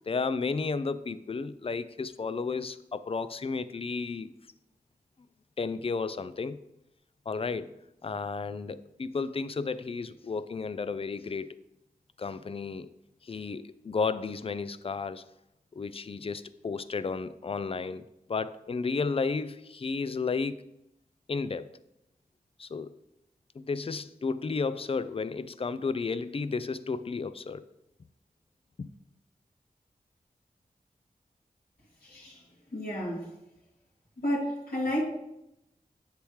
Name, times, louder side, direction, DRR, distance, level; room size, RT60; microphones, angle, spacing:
voice 1, 0.0-4.3 5.6-6.6 7.3-7.8 8.0-11.5 12.2-12.9 13.2-15.2 15.7-20.6 21.3-21.7 22.6-22.9 23.5-27.7 28.8-28.9, left 4 dB, 40° left, 0.4 m, -33 dB
voice 2, 32.0-32.4 32.7-33.3 34.2-35.0, equal, 75° left, 2.9 m, -31 dB
7.9 x 6.7 x 3.2 m
cardioid pair, 45°, 15 cm